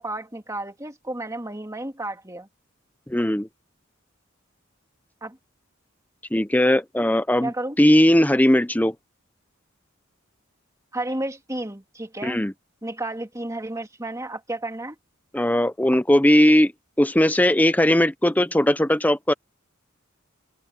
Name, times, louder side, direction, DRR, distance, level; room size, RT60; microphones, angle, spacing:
voice 1, 0.0-2.5 5.2-5.4 7.4-7.8 10.9-12.4 12.8-14.9, right 1 dB, 15° right, 2.8 m, -32 dB
voice 2, 3.1-3.5 6.3-8.9 12.2-12.5 15.3-16.7 17.0-19.3, left 1 dB, 10° left, 0.8 m, -19 dB
head